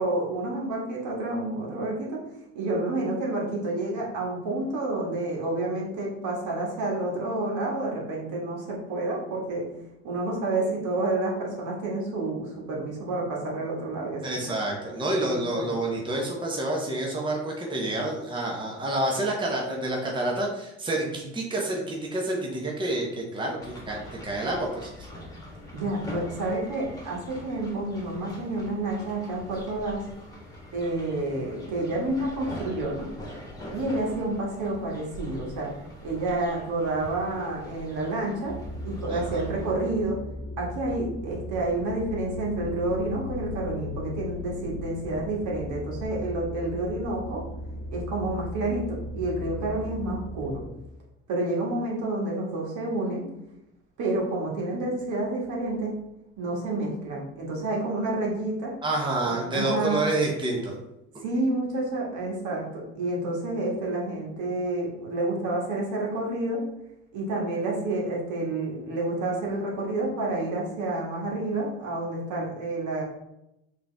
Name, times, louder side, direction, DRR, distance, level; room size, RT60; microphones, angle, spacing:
voice 1, 0.0-2.2 2.6-9.6 10.0-14.2 15.3-15.7 25.7-30.0 30.7-33.1 33.7-35.7 36.0-38.5 38.8-40.2 40.6-47.4 47.9-50.6 51.3-53.3 54.0-55.9 56.4-58.7 59.2-60.1 61.2-66.6 67.1-73.0, right 2 dB, 60° right, -3 dB, 1.7 m, -29 dB
voice 2, 14.2-25.1 39.1-39.4 58.8-60.8, right 1 dB, 15° right, -2 dB, 1.0 m, -28 dB
sound 1, 23.6-39.9, equal, 10° left, 1.5 m, -43 dB
sound 2, 38.5-50.7, left 1 dB, 40° left, 1.2 m, -37 dB
5.0 x 3.0 x 3.5 m, 0.86 s
supercardioid pair, 80°, 34 cm